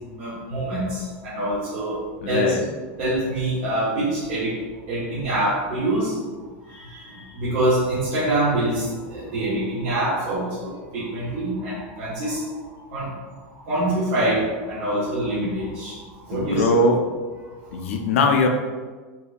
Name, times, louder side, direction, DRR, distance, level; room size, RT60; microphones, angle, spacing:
voice 1, 0.2-2.6 3.0-6.2 6.6-12.6 12.9-13.2 13.6-16.7 17.7-17.9, right 1 dB, 50° right, -8 dB, 1.1 m, -25 dB
voice 2, 2.2-2.6 16.3-17.0 17.7-18.5, left 2 dB, 90° left, 3 dB, 0.5 m, -20 dB
4.2 x 2.7 x 2.5 m, 1.4 s
supercardioid pair, 160°, 7 cm